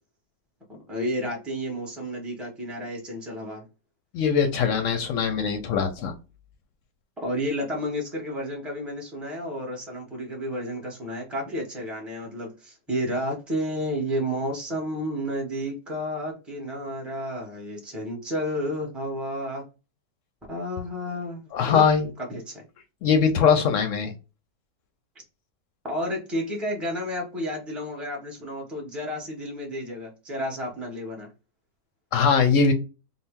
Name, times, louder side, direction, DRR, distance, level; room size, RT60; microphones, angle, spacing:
voice 1, 0.7-3.6 7.2-19.6 20.5-21.8 22.2-22.6 25.9-31.3, equal, ahead, 0 dB, 0.6 m, -31 dB
voice 2, 4.1-6.1 21.5-22.1 23.0-24.1 32.1-32.7, left 6 dB, 65° left, 8 dB, 0.8 m, -21 dB
3.8 x 2.0 x 3.5 m, 0.31 s
omnidirectional pair, 1.6 m